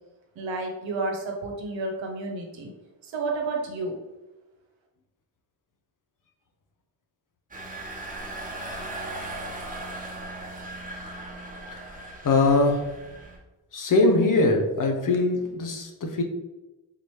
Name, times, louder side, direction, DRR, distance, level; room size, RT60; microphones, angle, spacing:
voice 1, 0.3-2.7 3.0-4.0, right 3 dB, 70° right, 1 dB, 1.0 m, -31 dB
Engine, 7.5-13.4, right 2 dB, 15° right, 1.2 m, -38 dB
voice 2, 12.2-12.8 13.7-16.2, left 2 dB, 40° left, 3 dB, 0.9 m, -22 dB
4.0 x 2.9 x 3.2 m, 1.1 s
supercardioid pair, 55°, 48 cm